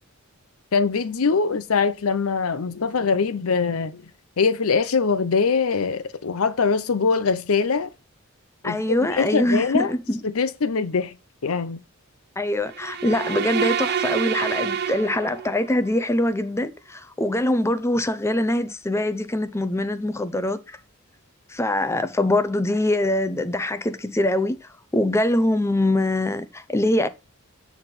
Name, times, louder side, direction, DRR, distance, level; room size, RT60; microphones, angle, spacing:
voice 1, 0.7-4.0 4.4-7.9 8.6-8.8 9.1-9.9 10.2-11.1 11.4-11.8, left 5 dB, 75° left, 0.7 m, -22 dB
voice 2, 8.6-10.2 12.4-20.8 21.5-27.1, left 1 dB, 10° left, 0.6 m, -23 dB
sound 1, 12.7-15.8, right 8 dB, 50° right, 0.6 m, -27 dB
8.7 x 3.6 x 5.8 m
head